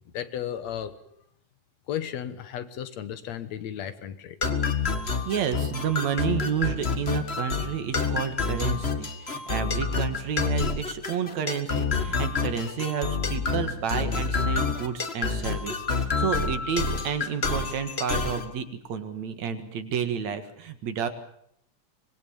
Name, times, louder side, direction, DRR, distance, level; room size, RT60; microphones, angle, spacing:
voice 1, 0.1-0.9 1.9-4.4, left 10 dB, 70° left, 12 dB, 2.4 m, -34 dB
sound 1, 4.4-18.5, left 4 dB, 25° left, 1.6 m, -28 dB
voice 2, 5.2-21.1, right 7 dB, 70° right, 9 dB, 3.0 m, -30 dB
25.5 x 21.0 x 7.2 m, 0.70 s
omnidirectional pair, 3.3 m